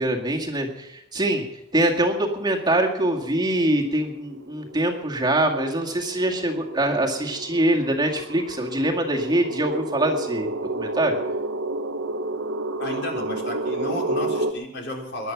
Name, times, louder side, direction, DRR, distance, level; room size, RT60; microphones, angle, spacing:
voice 1, 0.0-1.4 1.7-11.1, right 1 dB, 20° right, 0 dB, 2.0 m, -24 dB
sound 1, 3.1-3.2 3.7-14.5, right 2 dB, 90° right, 1.0 m, -31 dB
voice 2, 12.8-15.3, left 1 dB, 60° left, 0 dB, 4.0 m, -32 dB
21.5 x 11.0 x 5.9 m, 0.89 s
head